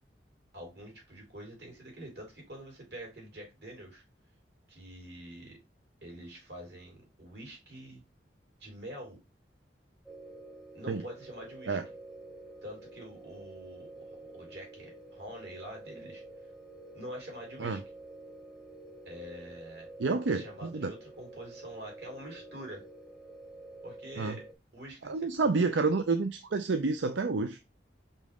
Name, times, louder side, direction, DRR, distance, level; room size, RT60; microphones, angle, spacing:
voice 1, 0.5-4.0 4.7-5.6 6.0-8.0 8.6-9.2 10.7-11.8 12.6-16.2 16.9-17.8 19.1-19.9 20.3-22.8 23.8-24.4 24.7-25.5, right 1 dB, 65° right, 3.5 m, -46 dB
sound 1, 10.1-24.5, right 2 dB, 5° right, 0.7 m, -49 dB
voice 2, 20.0-20.9 24.2-24.4 25.0-27.6, right 4 dB, 90° right, 0.5 m, -29 dB
5.5 x 5.1 x 3.6 m
head